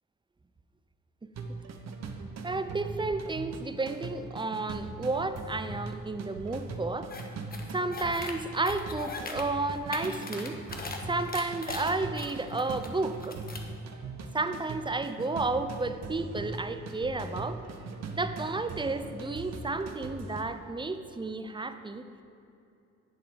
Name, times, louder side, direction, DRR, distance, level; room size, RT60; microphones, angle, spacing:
sound 1, 1.3-20.4, right 3 dB, 60° right, 1.1 m, -41 dB
voice 1, 2.4-7.1 7.7-10.6 11.1-13.4 14.3-17.6 18.1-22.1, right 3 dB, 15° right, 10 dB, 0.6 m, -32 dB
sound 2, 7.1-7.2 7.5-8.3 8.6-9.4 9.8-11.0 11.3-12.9 13.2-13.7, left 3 dB, 30° left, 1.3 m, -39 dB
10.5 x 7.6 x 5.3 m, 2.7 s
cardioid pair, 90°, 30 cm